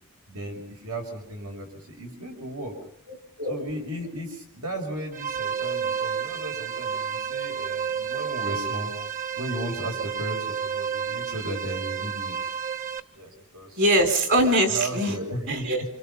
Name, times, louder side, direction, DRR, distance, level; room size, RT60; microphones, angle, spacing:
voice 1, 0.3-2.7 3.5-12.5 13.2-13.8 14.7-15.9, right 1 dB, 90° right, 2 dB, 6.6 m, -35 dB
voice 2, 3.1-3.5 13.8-15.1 15.5-15.8, right 1 dB, 60° right, 6 dB, 4.5 m, -22 dB
sound 1, 5.1-13.0, right 7 dB, 40° right, 1.0 m, -31 dB
28.0 x 27.0 x 5.8 m, 0.67 s
head